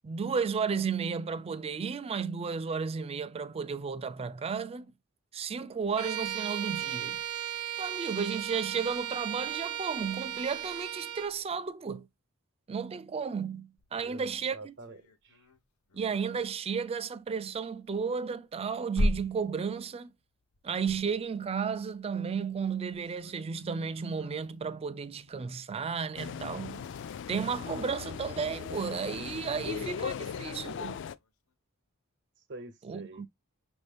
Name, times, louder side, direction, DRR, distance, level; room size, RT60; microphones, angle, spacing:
voice 1, 0.0-4.9 5.3-7.2 7.8-12.1 12.7-14.7 15.9-20.1 20.6-26.9 27.3-31.0 32.8-33.3, right 6 dB, 25° right, 0.3 m, -33 dB
Bowed string instrument, 6.0-11.4, right 11 dB, 85° right, 0.5 m, -36 dB
sound 1, 13.8-28.8 30.1-30.2 30.5-30.6 30.9-31.5, left 1 dB, 80° left, 0.7 m, -40 dB
voice 2, 13.9-15.5 29.6-29.7 32.5-33.2, right 2 dB, 55° right, 0.9 m, -46 dB
sound 2, 26.2-31.1, left 7 dB, 55° left, 0.3 m, -38 dB
5.9 x 2.6 x 3.3 m
head